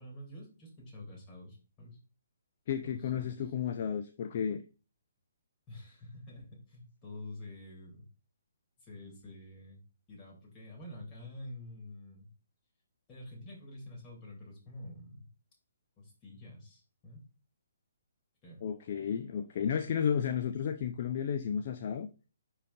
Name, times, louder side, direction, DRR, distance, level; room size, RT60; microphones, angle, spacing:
voice 1, 0.0-2.0 2.8-3.4 5.7-8.0 8.8-9.8 10.1-12.3 13.1-15.3 16.0-17.2 18.4-18.6, left 1 dB, 20° left, -2 dB, 3.0 m, -48 dB
voice 2, 2.7-4.6 18.6-22.1, left 8 dB, 40° left, 7 dB, 0.5 m, -33 dB
10.0 x 4.0 x 2.6 m, 0.34 s
figure-of-eight pair, 130°, 0 cm